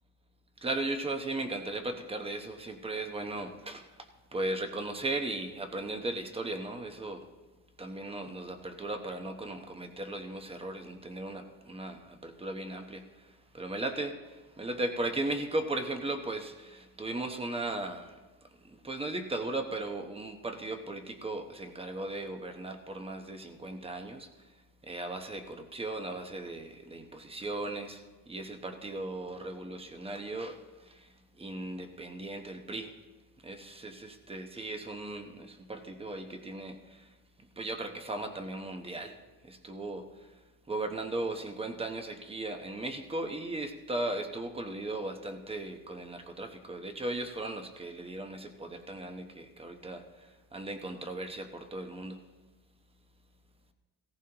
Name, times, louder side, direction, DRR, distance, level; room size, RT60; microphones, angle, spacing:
voice 1, 0.6-7.2 7.8-18.1 18.6-24.3 24.8-32.9 33.4-37.1 37.6-39.2 39.4-40.1 40.7-52.2, right 2 dB, 15° right, 6 dB, 0.9 m, -37 dB
17.0 x 14.5 x 2.9 m, 1.2 s
cardioid pair, 150°, 38 cm